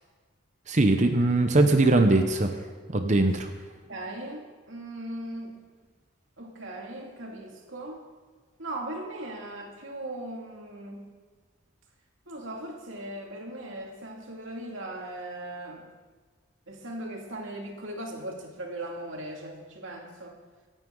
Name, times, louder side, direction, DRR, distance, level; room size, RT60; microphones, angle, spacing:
voice 1, 0.7-2.5 2.9-3.5, right 2 dB, 35° right, 6 dB, 0.8 m, -21 dB
voice 2, 3.9-5.5 6.4-8.0 8.6-11.1 12.3-15.9 16.7-20.4, right 1 dB, 70° right, 0 dB, 2.4 m, -38 dB
24.0 x 9.2 x 3.9 m, 1.4 s
head